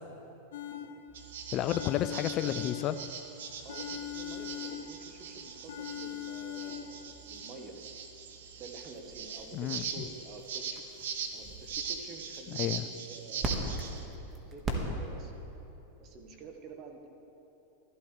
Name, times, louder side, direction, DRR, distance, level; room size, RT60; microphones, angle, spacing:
sound 1, 0.5-1.3 1.7-3.3 3.7-5.3 5.7-7.1, left 10 dB, 80° left, 0.6 m, -41 dB
sound 2, 1.1-15.5, right 2 dB, 25° right, 1.6 m, -43 dB
sound 3, 1.1-14.0, right 6 dB, 75° right, 1.0 m, -41 dB
voice 1, 1.5-3.0 9.5-9.8 12.5-12.9, left 12 dB, 40° left, 11 dB, 0.3 m, -31 dB
voice 2, 3.6-7.8 8.5-10.8 11.3-13.9 14.5-15.3 16.0-17.1, right 3 dB, 40° right, 4 dB, 1.3 m, -48 dB
13.0 x 12.0 x 3.3 m, 3.0 s
hypercardioid pair, 110°, 0 cm